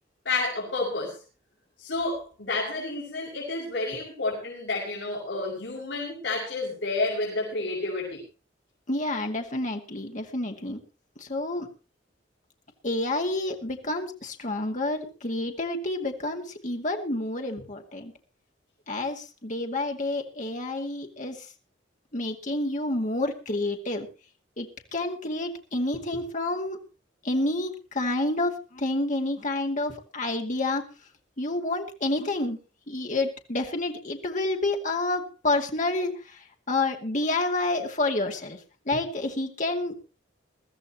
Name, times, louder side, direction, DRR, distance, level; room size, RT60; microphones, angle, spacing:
voice 1, 0.2-1.2 1.8-8.2, left 2 dB, 70° left, -4 dB, 5.9 m, -30 dB
voice 2, 8.9-10.8 11.2-11.7 12.8-18.1 18.9-21.5 22.1-24.1 24.6-26.8 27.2-30.8 31.4-32.6 32.9-38.6 38.9-40.0, left 2 dB, 45° left, 3 dB, 2.2 m, -29 dB
22.0 x 14.0 x 3.0 m, 0.33 s
head